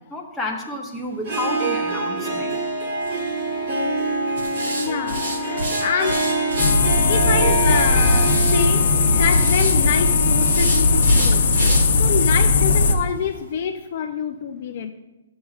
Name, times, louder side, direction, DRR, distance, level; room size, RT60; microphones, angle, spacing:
voice 1, 0.0-2.6, left 1 dB, 5° left, -2 dB, 0.7 m, -31 dB
Harp, 1.2-13.1, right 2 dB, 35° right, 1.4 m, -26 dB
sound 1, 3.0-3.3 4.4-6.7 7.8-8.6 9.2-9.7 10.4-11.8 12.2-12.3 12.8-12.9 13.2-13.3, right 1 dB, 70° right, 3.1 m, -29 dB
voice 2, 4.8-6.2 7.1-8.9 9.1-11.7 12.0-14.9, left 7 dB, 40° left, 6 dB, 0.4 m, -26 dB
sound 2, 6.6-12.9, left 3 dB, 65° left, 0.8 m, -17 dB
12.5 x 7.1 x 2.4 m, 1.1 s
hypercardioid pair, 170°, 0 cm